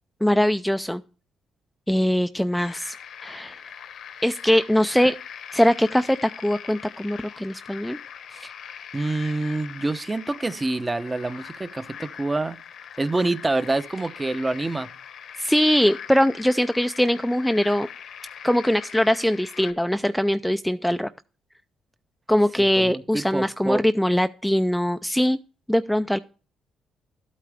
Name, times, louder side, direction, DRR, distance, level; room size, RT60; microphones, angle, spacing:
voice 1, 0.2-1.0 1.9-2.9 3.2-3.6 4.2-5.2 5.5-8.0 15.4-17.9 18.4-21.1 22.3-25.4 25.7-26.2, equal, 5° left, 0.4 m, -21 dB
sound 1, 2.5-19.7, left 8 dB, 70° left, 1.1 m, -41 dB
voice 2, 8.9-12.6 13.0-14.9 22.6-23.8, right 2 dB, 20° right, 0.7 m, -27 dB
13.0 x 8.4 x 3.4 m
cardioid pair, 90°, 0 cm